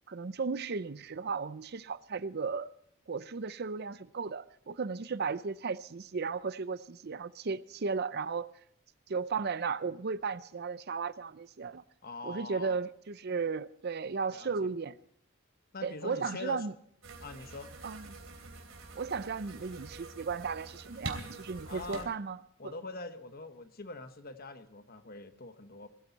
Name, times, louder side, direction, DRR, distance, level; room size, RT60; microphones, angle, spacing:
voice 1, 0.1-2.7 3.1-8.5 9.1-11.8 12.2-15.0 15.8-16.7 17.8-18.1 19.0-22.7, right 5 dB, 55° right, 0.6 m, -35 dB
voice 2, 12.0-12.8 14.3-14.7 15.7-16.6 17.2-17.7 21.7-22.1 22.6-25.9, left 3 dB, 45° left, 1.2 m, -43 dB
sound 1, 17.0-22.0, right 3 dB, 85° right, 3.1 m, -45 dB
20.0 x 13.5 x 4.1 m
head